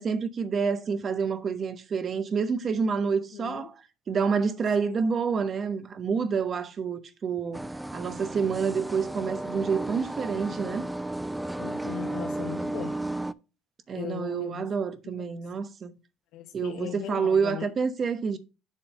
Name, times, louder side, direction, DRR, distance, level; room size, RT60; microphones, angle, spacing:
voice 1, 0.0-3.8 4.1-7.6 7.9-10.9 13.9-15.9 16.5-18.4, right 5 dB, 40° right, 1.0 m, -28 dB
voice 2, 3.3-3.7 11.6-13.0 13.9-14.7 15.0-15.2 16.3-17.7, left 11 dB, 75° left, 0.8 m, -38 dB
sound 1, 7.5-13.3, right 1 dB, 5° right, 0.4 m, -34 dB
7.4 x 3.8 x 6.4 m
cardioid pair, 100°, 0 cm